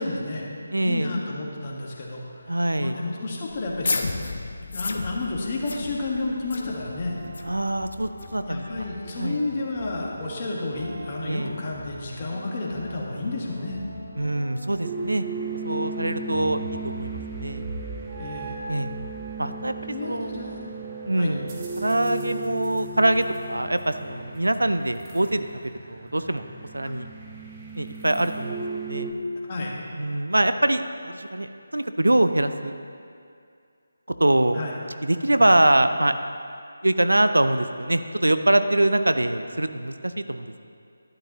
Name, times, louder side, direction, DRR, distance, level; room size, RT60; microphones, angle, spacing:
voice 1, 0.0-4.2 4.7-7.2 8.3-13.8 18.2-18.5 19.9-20.5 21.2-21.3 26.8-26.9 29.5-29.8 34.5-34.8 35.4-35.6, left 2 dB, 35° left, -2 dB, 1.5 m, -31 dB
voice 2, 0.7-1.1 2.5-3.0 7.4-8.9 9.2-9.4 11.2-11.5 14.2-15.2 15.6-17.7 18.7-18.9 19.4-20.5 21.1-21.5 21.8-25.5 25.9-26.4 26.7-27.1 27.8-29.1 29.9-32.7 34.2-34.6 35.0-36.1 36.8-40.7, right 1 dB, 75° right, 10 dB, 0.5 m, -24 dB
sound 1, 3.5-8.9, left 3 dB, 50° left, 0.7 m, -33 dB
sound 2, 6.0-14.7, left 1 dB, ahead, 2.0 m, -44 dB
sound 3, 14.8-29.1, right 3 dB, 20° right, 1.0 m, -36 dB
11.5 x 11.5 x 3.0 m, 2.4 s
figure-of-eight pair, 155°, 0 cm